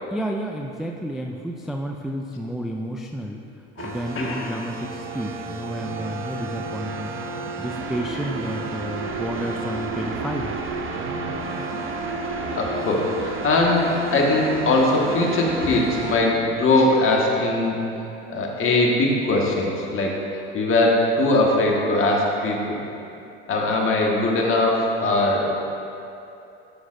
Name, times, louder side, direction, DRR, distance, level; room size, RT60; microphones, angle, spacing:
voice 1, 0.1-3.4 3.8-7.2 7.6-10.5, equal, ahead, 1 dB, 0.3 m, -31 dB
voice 2, 3.8-4.5 12.5-17.8 18.3-20.1 20.5-22.8 23.5-25.5, left 2 dB, 40° left, -1 dB, 1.5 m, -21 dB
sound 1, 3.8-16.2, right 3 dB, 40° right, 0.8 m, -31 dB
11.5 x 6.2 x 2.6 m, 2.7 s
hypercardioid pair, 85°, 32 cm